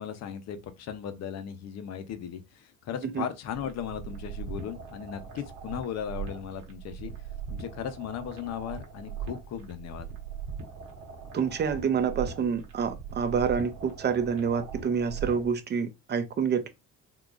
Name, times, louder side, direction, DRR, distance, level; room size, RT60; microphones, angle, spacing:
voice 1, 0.0-7.1 7.5-10.1, left 8 dB, 60° left, 0.7 m, -37 dB
sound 1, 3.5-15.6, right 6 dB, 85° right, 1.1 m, -40 dB
voice 2, 11.3-16.7, right 6 dB, 35° right, 0.5 m, -27 dB
3.8 x 2.9 x 2.4 m
cardioid pair, 125°, 30 cm